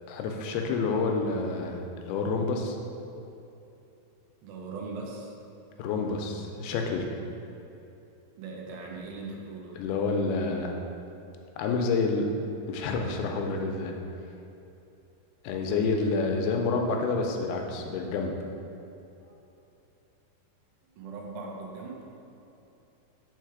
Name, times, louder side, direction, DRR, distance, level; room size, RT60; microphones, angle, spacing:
voice 1, 0.1-2.8 5.8-7.1 9.8-10.8 11.6-12.3 12.7-14.0 15.4-18.3, left 4 dB, 85° left, 3 dB, 2.5 m, -28 dB
voice 2, 4.4-5.4 8.4-9.8 19.2-19.3 21.0-22.0, right 3 dB, 75° right, -1 dB, 2.4 m, -39 dB
5.6 x 4.6 x 4.6 m, 2.9 s
omnidirectional pair, 4.6 m